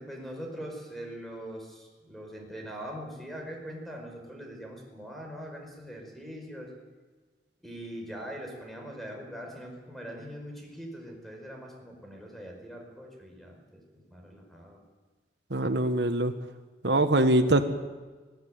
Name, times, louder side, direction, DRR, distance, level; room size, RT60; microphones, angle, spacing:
voice 1, 0.0-6.7 7.6-14.8, equal, ahead, 2 dB, 5.1 m, -42 dB
voice 2, 15.5-16.3 16.8-17.6, right 1 dB, 70° right, 9 dB, 1.4 m, -23 dB
21.5 x 16.0 x 9.3 m, 1.3 s
head